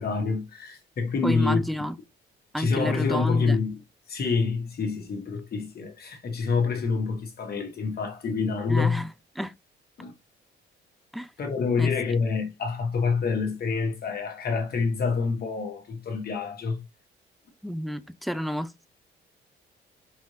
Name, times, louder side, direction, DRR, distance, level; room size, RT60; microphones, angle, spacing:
voice 1, 0.0-1.6 2.6-3.8 4.1-9.0 10.0-10.1 11.4-16.8, left 4 dB, 50° left, 1.6 m, -27 dB
voice 2, 1.2-2.0 2.5-3.6 8.7-9.1 9.4-9.5 11.1-11.3 11.8-11.9 17.6-18.9, equal, ahead, 0.4 m, -30 dB
5.5 x 2.7 x 3.1 m
cardioid pair, 90°, 20 cm